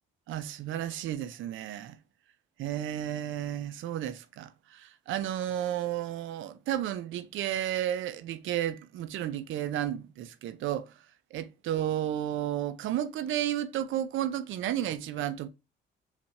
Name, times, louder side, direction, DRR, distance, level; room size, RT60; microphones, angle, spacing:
voice 1, 0.3-2.0 2.6-10.9 11.3-15.5, right 11 dB, 80° right, 0.5 m, -32 dB
4.1 x 2.5 x 4.3 m
cardioid pair, 90°, 20 cm